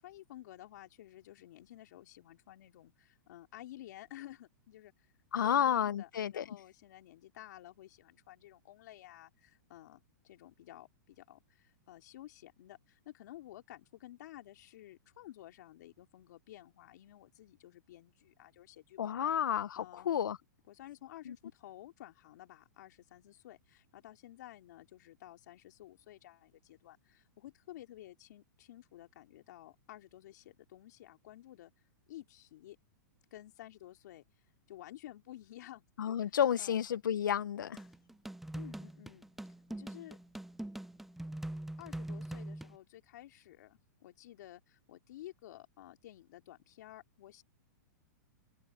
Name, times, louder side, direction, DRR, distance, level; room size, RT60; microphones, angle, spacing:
voice 1, 0.0-5.1 5.4-19.3 19.8-20.1 20.7-31.7 32.1-32.8 33.3-34.2 34.7-36.8 38.5-39.3 39.7-40.2 41.8-47.4, left 14 dB, 65° left, 3.5 m, -53 dB
voice 2, 5.3-6.5 19.0-20.4 21.3-21.4 36.0-37.8, left 9 dB, 90° left, 0.7 m, -31 dB
sound 1, 37.8-42.8, right 1 dB, ahead, 0.5 m, -43 dB
hypercardioid pair, 135°, 10 cm